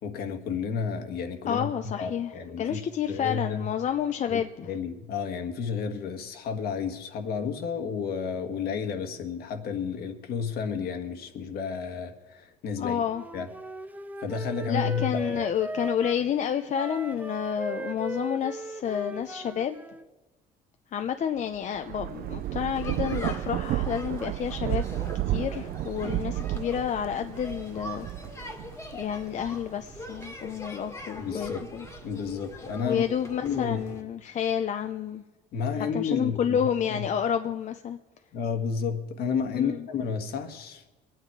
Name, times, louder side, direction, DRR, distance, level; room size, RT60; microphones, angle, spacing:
voice 1, 0.0-1.7 2.0-2.8 3.1-3.7 4.3-4.4 4.7-13.0 13.3-13.5 14.2-15.5 31.2-31.7 32.0-33.0 33.4-33.8 35.5-37.0 38.3-40.9, left 6 dB, 70° left, 1.5 m, -31 dB
voice 2, 1.5-2.3 2.6-4.7 12.8-13.2 14.7-19.8 20.9-24.9 25.3-28.1 28.9-31.9 32.8-35.2 35.8-38.0 39.5-39.8, left 8 dB, 45° left, 0.6 m, -29 dB
Wind instrument woodwind instrument, 13.1-16.2 16.7-20.0, right 2 dB, 10° right, 0.5 m, -38 dB
Thunder / Rain, 21.6-30.5 31.0-32.3, right 14 dB, 60° right, 0.5 m, -33 dB
sound 1, 22.7-34.0, left 1 dB, 15° left, 1.8 m, -43 dB
23.5 x 9.2 x 4.7 m
cardioid pair, 110°, 17 cm